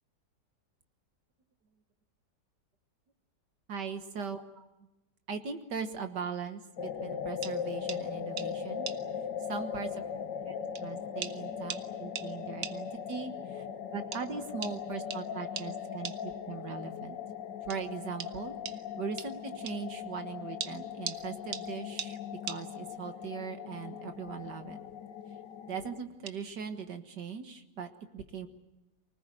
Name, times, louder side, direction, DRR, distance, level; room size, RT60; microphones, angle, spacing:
voice 1, 3.7-4.7 5.3-8.9 9.5-10.0 10.5-13.6 13.9-17.2 17.6-22.2 22.4-24.8 25.7-28.5, right 6 dB, 70° right, 7 dB, 2.0 m, -40 dB
sound 1, 6.8-26.0, left 7 dB, 80° left, 1.8 m, -39 dB
sound 2, 7.4-7.6 7.9-8.0 8.4-8.5 8.9-9.0 10.0-10.1 10.8-10.9 11.2-11.4 11.7-11.9 12.2-12.3 12.6-12.8 14.1-14.2 14.6-14.8 15.1-15.2 15.6-15.7 16.0-16.2 17.7-17.8 18.2-18.3 18.7-18.8 19.2-19.3 19.7-19.8 20.6-21.2 21.5-21.7 22.0-22.1 22.5-22.6 24.3-24.5 24.8-25.1 26.3-26.4, right 7 dB, 55° right, 1.4 m, -39 dB
24.5 x 19.0 x 9.1 m, 0.97 s
omnidirectional pair, 1.9 m